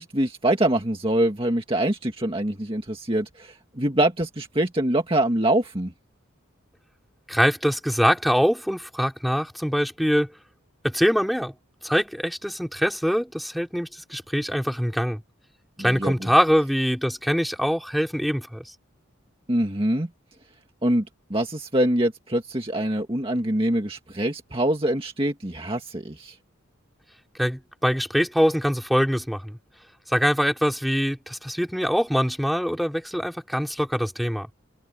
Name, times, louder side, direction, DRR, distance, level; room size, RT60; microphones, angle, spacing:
voice 1, 0.0-5.9 15.8-16.3 19.5-20.1 20.8-21.1 21.3-26.4, right 1 dB, 25° right, 2.0 m, -24 dB
voice 2, 7.3-10.3 10.8-11.5 11.8-15.2 15.8-18.6 27.4-29.6 30.1-34.5, equal, ahead, 4.4 m, -23 dB
head